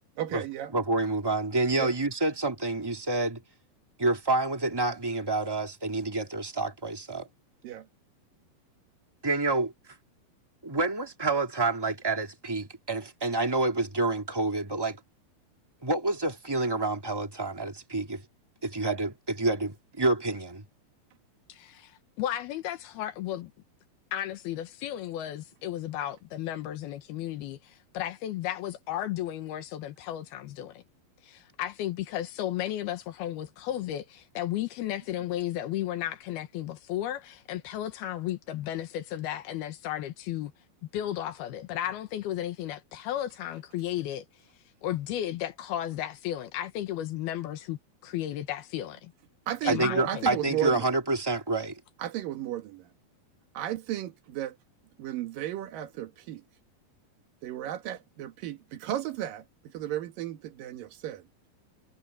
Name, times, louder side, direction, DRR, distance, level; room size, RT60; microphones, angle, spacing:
voice 1, 0.2-0.7 1.8-1.9 7.6-7.9 49.5-50.9 52.0-52.9 53.5-54.6 55.0-56.4 57.4-61.2, right 12 dB, 70° right, 3.1 m, -34 dB
voice 2, 0.7-3.4 4.0-7.3 9.2-9.7 10.6-15.0 15.8-18.2 18.6-20.6 49.7-51.8, right 2 dB, 10° right, 1.8 m, -28 dB
voice 3, 21.5-23.5 24.1-30.8 31.2-40.5 40.9-44.2 44.8-49.1 49.6-50.3, left 12 dB, 85° left, 3.2 m, -34 dB
omnidirectional pair, 4.3 m